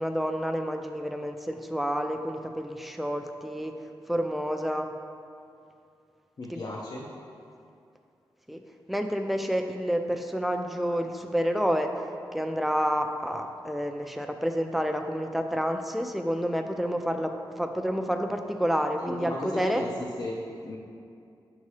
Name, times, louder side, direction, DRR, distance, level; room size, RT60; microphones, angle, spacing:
voice 1, 0.0-3.8 4.1-4.9 6.5-6.6 8.5-8.6 8.9-11.9 12.3-19.8, equal, ahead, 5 dB, 0.3 m, -29 dB
voice 2, 6.4-7.1 19.0-20.8, left 1 dB, 50° left, -3 dB, 0.6 m, -35 dB
7.2 x 2.8 x 4.7 m, 2.5 s
wide cardioid pair, 105°, 9 cm